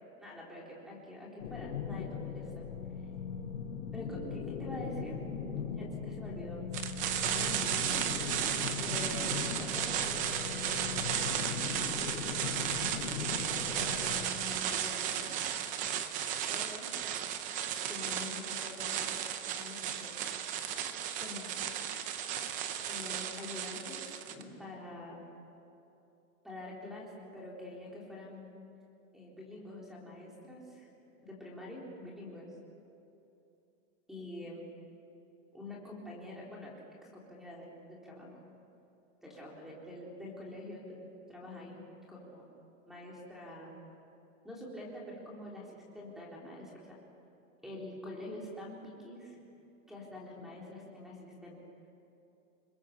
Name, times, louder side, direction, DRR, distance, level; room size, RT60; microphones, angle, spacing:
voice 1, 0.2-2.7 3.9-5.2 5.5-6.6 7.3-8.0 8.8-11.4 13.0-15.4 15.7-15.9 16.5-16.9 17.9-19.1 19.5-20.1 21.2-21.6 22.9-24.0 24.3-25.3 26.4-28.5 29.1-30.9 31.2-32.5 34.1-34.6 35.5-36.7 37.0-38.4 39.2-40.8 41.3-41.8 42.1-42.4 42.9-43.8 44.4-47.0 47.6-49.4 49.9-51.6, left 1 dB, ahead, -3 dB, 3.8 m, -46 dB
sound 1, 1.4-14.3, left 6 dB, 85° left, 4.9 m, -39 dB
sound 2, 6.7-24.4, right 9 dB, 20° right, 0.7 m, -34 dB
29.0 x 21.0 x 7.2 m, 2.9 s
supercardioid pair, 175°, 40 cm